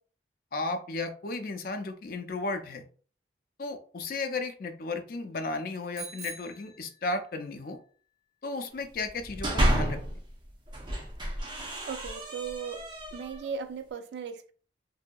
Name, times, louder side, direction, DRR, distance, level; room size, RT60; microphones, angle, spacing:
voice 1, 0.5-2.9 3.6-7.8 8.4-10.0, left 3 dB, 55° left, 0.4 m, -34 dB
Bicycle bell, 5.9-7.5, right 4 dB, 65° right, 1.4 m, -44 dB
sound 1, 9.1-10.2 10.7-13.5, equal, 25° right, 0.7 m, -30 dB
voice 2, 11.8-12.8 13.1-14.5, right 6 dB, 80° right, 0.3 m, -37 dB
2.7 x 2.6 x 2.2 m
head